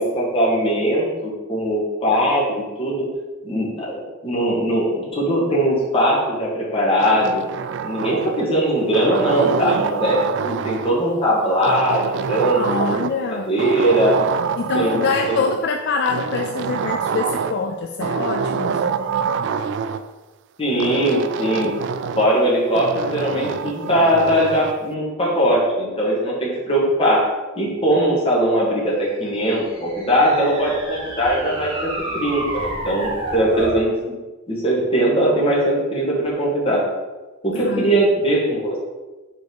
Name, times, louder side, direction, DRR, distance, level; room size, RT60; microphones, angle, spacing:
voice 1, 0.0-2.4 2.8-3.0 3.4-7.4 7.8-10.2 10.4-12.6 13.2-14.2 14.7-15.5 20.6-21.7 22.2-27.2 27.6-34.1 34.5-36.8 37.4-38.8, right 1 dB, 25° left, -5 dB, 1.9 m, -20 dB
sound 1, 7.0-8.6 8.9-11.0 11.6-13.3 13.6-15.6 16.1-17.6 18.0-20.0 20.8-22.3 22.8-24.8, right 6 dB, 55° right, 0.3 m, -26 dB
voice 2, 12.5-13.5 14.6-19.4 37.5-38.0, left 4 dB, 50° left, 4 dB, 0.4 m, -25 dB
sound 2, 29.4-33.8, right 1 dB, 25° right, 1.9 m, -30 dB
5.2 x 4.5 x 4.6 m, 1.2 s
head